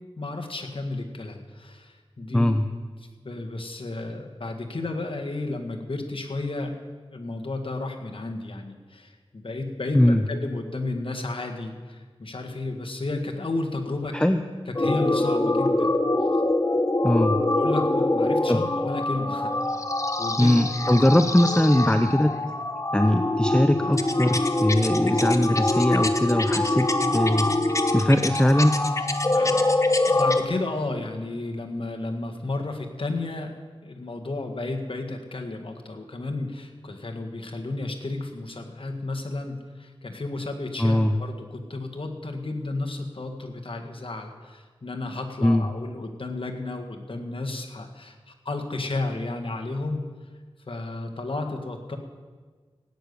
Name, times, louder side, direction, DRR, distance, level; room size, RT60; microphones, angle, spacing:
voice 1, 0.2-2.5 3.2-6.8 7.1-14.2 14.7-16.0 17.5-19.8 20.2-20.6 20.9-21.0 29.3-33.5 33.8-50.1 50.7-52.0, left 2 dB, 60° left, 3 dB, 1.9 m, -32 dB
voice 2, 2.3-2.7 9.9-10.2 14.1-14.4 17.0-17.4 18.5-18.6 20.4-22.3 22.9-27.5 27.9-28.7 40.8-41.2 45.4-45.7, left 1 dB, 10° left, 8 dB, 0.7 m, -21 dB
sound 1, 14.7-30.4, left 2 dB, 30° left, 1.1 m, -24 dB
16.5 x 9.7 x 6.9 m, 1.5 s
wide cardioid pair, 60°, 10 cm